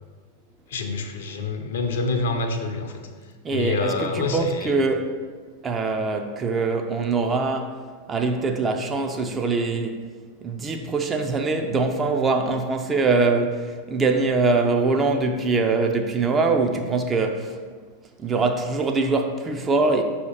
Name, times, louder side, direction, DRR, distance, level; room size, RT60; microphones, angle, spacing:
voice 1, 0.7-2.9 3.5-4.7, left 3 dB, 60° left, 0.6 m, -27 dB
voice 2, 3.4-5.1 5.6-7.8 8.1-10.0 10.4-17.6 18.2-20.0, right 3 dB, 20° right, 0.4 m, -23 dB
6.1 x 2.8 x 5.6 m
figure-of-eight pair, 90°, 0 cm